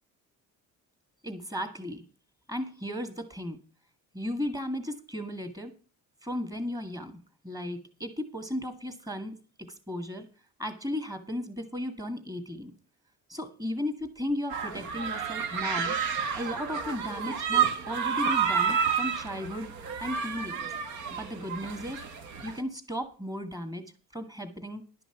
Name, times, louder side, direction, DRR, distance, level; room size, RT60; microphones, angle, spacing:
voice 1, 1.2-2.0 2.5-3.6 4.1-5.7 6.2-7.1 7.4-9.4 9.9-10.3 10.6-12.7 13.3-15.9 16.4-19.7 20.0-20.7 21.1-22.0 22.4-23.8 24.1-24.8, left 1 dB, 10° right, 7 dB, 2.0 m, -35 dB
sound 1, 14.5-22.6, right 7 dB, 65° right, 1.6 m, -30 dB
11.5 x 6.0 x 7.2 m, 0.37 s
cardioid pair, 150°, 32 cm